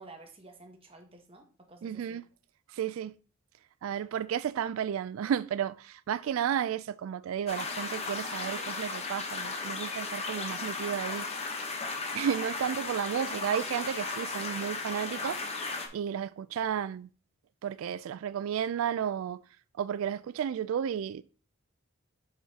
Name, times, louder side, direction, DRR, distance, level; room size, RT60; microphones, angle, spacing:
voice 1, 0.0-2.2, right 2 dB, 25° right, 1.1 m, -52 dB
voice 2, 1.8-2.2 2.7-3.1 3.8-11.3 12.1-15.4 15.9-17.1 17.6-19.4 19.8-21.2, right 8 dB, 75° right, 0.3 m, -32 dB
sound 1, 7.5-15.9, left 3 dB, 30° left, 0.9 m, -35 dB
7.5 x 5.7 x 2.8 m
head